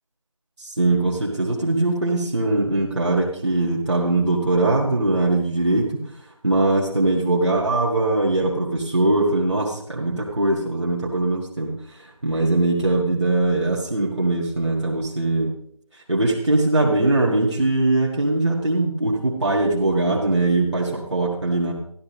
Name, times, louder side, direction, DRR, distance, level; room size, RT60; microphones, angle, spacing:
voice 1, 0.6-6.0 6.4-15.5 16.1-21.7, right 2 dB, 45° right, -2 dB, 1.8 m, -21 dB
14.5 x 11.0 x 3.1 m, 0.65 s
figure-of-eight pair, 165°, 20 cm